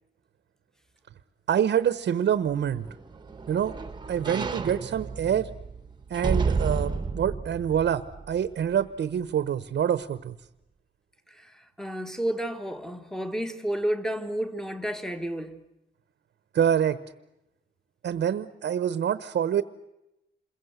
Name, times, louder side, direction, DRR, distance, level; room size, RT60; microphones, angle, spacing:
voice 1, 1.5-2.9 3.5-3.8 4.1-5.5 6.1-10.3 16.5-17.0 18.0-19.6, right 9 dB, 70° right, 1.0 m, -26 dB
sound 1, 2.5-8.9 9.3-9.4, right 4 dB, 25° right, 1.2 m, -32 dB
voice 2, 11.3-15.6, right 1 dB, 5° left, 1.5 m, -31 dB
27.5 x 22.0 x 8.1 m
wide cardioid pair, 175°, 19 cm